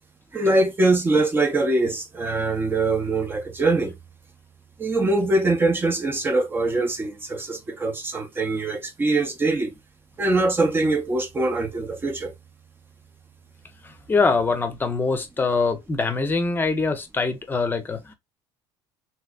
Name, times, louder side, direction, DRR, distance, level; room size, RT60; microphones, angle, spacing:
voice 1, 0.3-3.9 4.8-9.7 10.2-12.3, right 2 dB, 20° right, 0.9 m, -23 dB
voice 2, 14.1-18.1, left 4 dB, 20° left, 0.8 m, -23 dB
3.2 x 3.0 x 2.4 m
cardioid pair, 110°, 10 cm